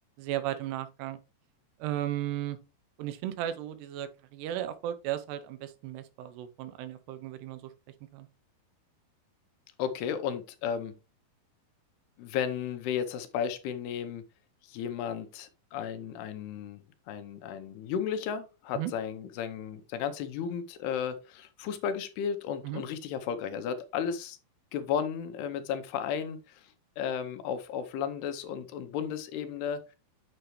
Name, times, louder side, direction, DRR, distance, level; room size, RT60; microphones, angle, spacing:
voice 1, 0.2-1.2 1.8-2.6 3.0-7.7 8.1-8.3 18.8-18.9 22.6-22.8, right 12 dB, 85° right, 2.9 m, -35 dB
voice 2, 9.8-10.9 12.2-14.2 14.6-16.8 17.1-24.4 24.7-29.8, left 8 dB, 80° left, 2.9 m, -34 dB
8.1 x 6.7 x 3.1 m
omnidirectional pair, 4.7 m